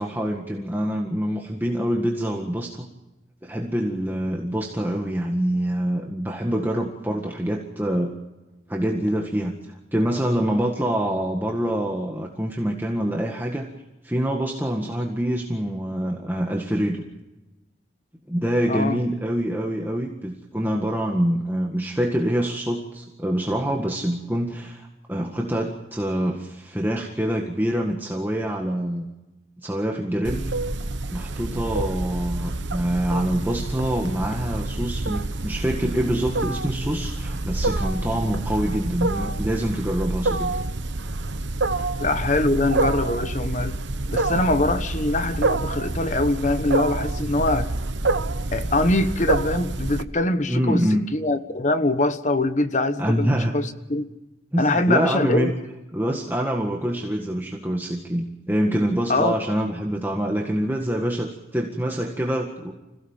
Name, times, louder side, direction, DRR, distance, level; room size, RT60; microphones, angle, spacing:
voice 1, 0.0-2.9 3.4-8.1 8.7-13.7 14.0-17.0 18.3-29.1 29.6-30.5 31.1-40.6 41.8-41.9 50.5-51.1 53.0-53.6 54.5-55.6 55.9-62.7, equal, 10° right, 0 dB, 1.7 m, -25 dB
Wild animals, 30.2-50.0, right 2 dB, 70° right, 1.1 m, -27 dB
voice 2, 42.0-43.8 44.1-47.7 48.5-50.8 51.1-54.1 54.6-55.5 59.1-59.4, left 2 dB, 40° left, 10 dB, 1.2 m, -23 dB
26.5 x 16.5 x 7.3 m, 1.0 s
head